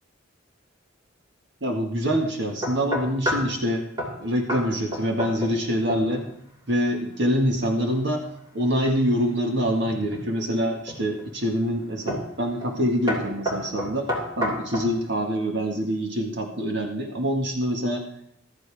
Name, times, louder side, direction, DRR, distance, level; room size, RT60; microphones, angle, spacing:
voice 1, 1.6-3.8 4.2-6.2 6.7-8.3 8.5-14.1 14.4-18.0, equal, 55° right, 2 dB, 1.8 m, -25 dB
sound 1, 2.6-3.5 4.0-4.2 4.5-4.7 4.9-5.6 5.9-6.3 9.6-10.3 10.9-11.3 12.1-12.3 12.6-12.8 13.1-14.9, equal, 20° right, 3.2 m, -29 dB
15.0 x 13.0 x 3.5 m, 0.72 s
head